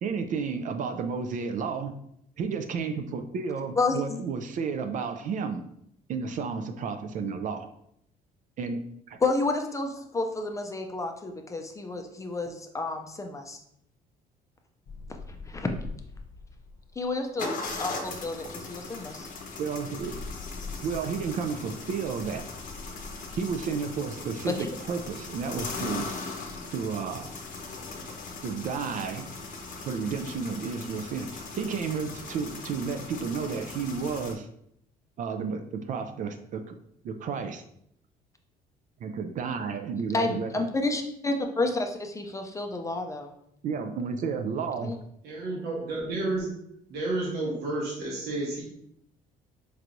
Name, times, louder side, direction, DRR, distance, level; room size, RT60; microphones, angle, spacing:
voice 1, 0.0-1.9 2.4-5.6 6.1-7.7 8.6-8.8 9.1-9.2 19.6-20.2 20.8-22.4 23.3-26.1 26.7-27.3 28.4-29.3 29.8-34.5 35.2-36.8 37.0-37.6 39.0-40.5 43.6-44.9, right 5 dB, 50° right, 7 dB, 0.4 m, -32 dB
voice 2, 3.8-4.2 9.2-13.6 15.4-15.7 17.0-17.5 17.8-19.3 24.5-24.7 40.1-43.3 44.8-45.0, left 3 dB, 20° left, 4 dB, 0.4 m, -30 dB
sound 1, 14.9-16.8 17.4-34.3, left 3 dB, 50° left, 0.7 m, -39 dB
voice 3, 45.2-46.5 46.9-48.6, right 2 dB, 70° right, -4 dB, 1.0 m, -31 dB
4.5 x 3.0 x 2.5 m, 0.73 s
cardioid pair, 110°, 17 cm